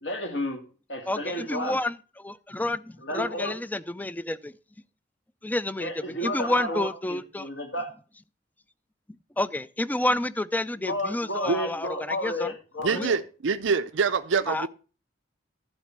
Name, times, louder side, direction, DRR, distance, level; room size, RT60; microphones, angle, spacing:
voice 1, 0.0-1.8 3.0-3.6 5.8-7.9 10.8-13.2, left 1 dB, 65° left, 2.8 m, -32 dB
voice 2, 1.1-4.5 5.4-5.9 6.2-7.5 9.4-12.5 12.9-13.1 14.5-14.7, left 1 dB, 10° left, 0.4 m, -29 dB
voice 3, 12.8-14.7, right 5 dB, 75° right, 0.6 m, -25 dB
11.5 x 4.2 x 8.0 m
head